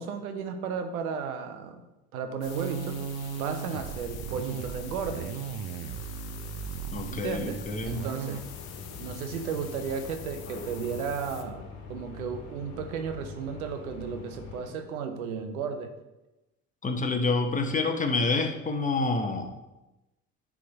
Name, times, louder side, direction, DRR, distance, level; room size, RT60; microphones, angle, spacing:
voice 1, 0.0-1.8 2.1-3.0 3.4-5.3 7.0-8.4 9.0-11.6 11.9-15.9, right 6 dB, 85° right, 7 dB, 0.9 m, -34 dB
sound 1, 2.4-11.4, left 9 dB, 60° left, 0.9 m, -45 dB
sound 2, 2.5-8.4, right 8 dB, 60° right, 0.7 m, -37 dB
voice 2, 6.9-8.0 16.8-19.6, left 3 dB, 20° left, 5 dB, 1.1 m, -28 dB
sound 3, 8.3-14.7, left 4 dB, 45° left, 1.9 m, -44 dB
9.7 x 3.7 x 4.0 m, 1.0 s
hypercardioid pair, 60°, 42 cm